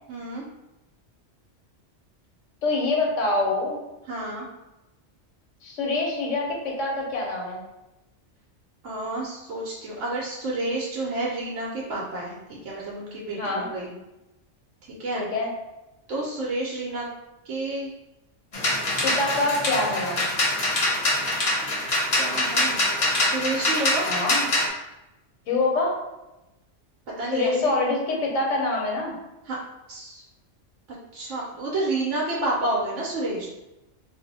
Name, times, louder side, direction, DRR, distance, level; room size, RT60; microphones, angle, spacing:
voice 1, 0.1-0.4 4.1-4.5 8.8-13.9 14.9-15.2 16.1-17.1 17.4-17.9 22.1-22.8 23.2-24.1 27.2-27.8 29.4-29.6 29.9-30.2 30.9-33.5, right 2 dB, 90° right, -5 dB, 1.0 m, -30 dB
voice 2, 2.6-3.8 5.6-7.6 13.4-13.7 15.1-15.5 19.0-20.3 24.0-24.4 25.5-25.9 27.3-29.1, left 2 dB, 85° left, -1 dB, 1.1 m, -25 dB
sound 1, 18.5-24.7, left 1 dB, 45° left, 0.7 m, -24 dB
2.6 x 2.0 x 3.9 m, 0.97 s
omnidirectional pair, 1.2 m